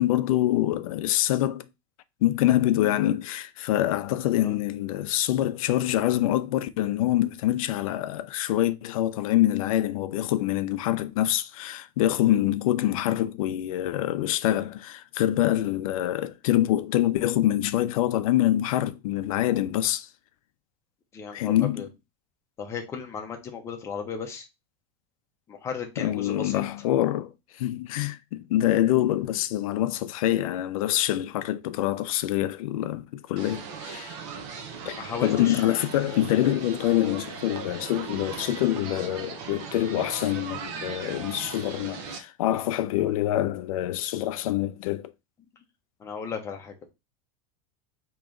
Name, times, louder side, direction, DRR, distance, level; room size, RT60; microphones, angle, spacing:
voice 1, 0.0-1.7 2.2-20.1 21.3-21.9 26.0-34.2 34.8-45.1, left 13 dB, 75° left, 0.5 m, -25 dB
voice 2, 21.1-21.9 22.6-24.5 25.5-26.6 35.0-35.6 46.0-46.7, left 6 dB, 15° left, 0.7 m, -35 dB
sound 1, 33.4-42.2, right 6 dB, 45° right, 0.8 m, -38 dB
4.8 x 3.0 x 3.7 m
supercardioid pair, 175°, 18 cm